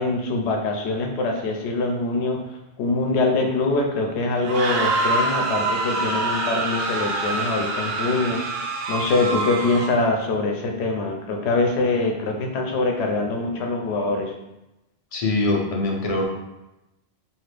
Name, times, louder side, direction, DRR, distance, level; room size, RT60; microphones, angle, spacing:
voice 1, 0.0-2.4 2.8-14.3, left 3 dB, 90° left, 2 dB, 0.9 m, -24 dB
sound 1, 4.4-10.1, right 3 dB, 70° right, 0.8 m, -25 dB
voice 2, 15.1-16.2, left 2 dB, 45° left, -1 dB, 0.5 m, -23 dB
2.7 x 2.5 x 3.2 m, 0.94 s
omnidirectional pair, 1.1 m